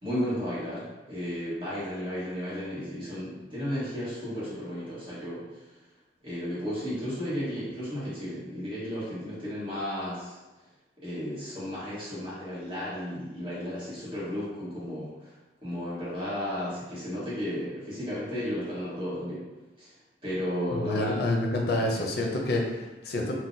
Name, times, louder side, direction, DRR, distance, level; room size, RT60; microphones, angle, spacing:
voice 1, 0.0-5.4 6.2-10.4 11.0-15.3 15.6-19.5 19.8-19.9 20.2-21.2 21.9-22.1, equal, 30° right, -10 dB, 1.3 m, -34 dB
voice 2, 20.7-23.3, left 1 dB, 60° left, 0 dB, 0.5 m, -28 dB
3.7 x 2.2 x 2.7 m, 1.1 s
head